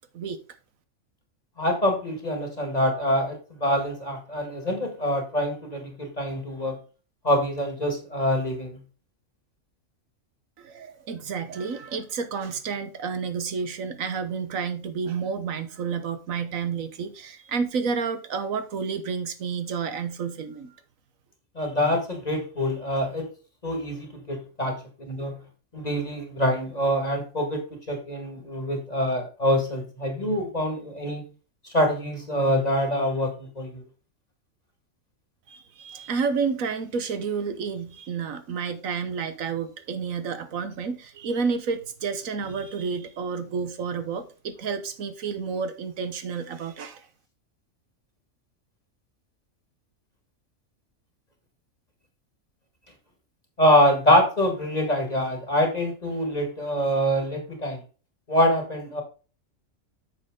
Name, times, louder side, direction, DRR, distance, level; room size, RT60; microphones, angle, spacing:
voice 1, 1.6-6.8 7.2-8.8 21.6-23.3 23.6-24.8 25.1-25.4 25.7-31.3 31.6-33.8 53.6-57.8 58.3-59.0, equal, 30° left, 2.1 m, -25 dB
voice 2, 10.6-20.7 35.5-47.1, right 5 dB, 75° right, 1.4 m, -30 dB
8.9 x 6.5 x 3.7 m
omnidirectional pair, 1.4 m